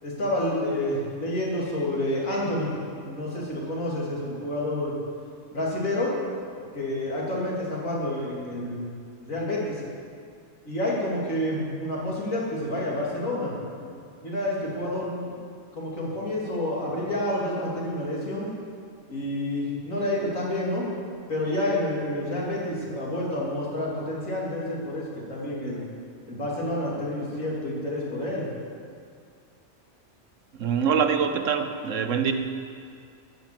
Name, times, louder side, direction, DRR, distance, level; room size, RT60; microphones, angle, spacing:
voice 1, 0.0-2.7 3.0-5.0 5.5-6.2 6.7-8.9 9.2-9.8 10.6-13.9 14.2-15.4 15.7-18.5 19.1-20.9 21.3-25.8 26.3-28.5, left 1 dB, 80° left, -5 dB, 3.5 m, -29 dB
voice 2, 30.6-32.3, right 7 dB, 70° right, 7 dB, 1.2 m, -24 dB
14.5 x 8.0 x 7.7 m, 2.3 s
omnidirectional pair, 1.4 m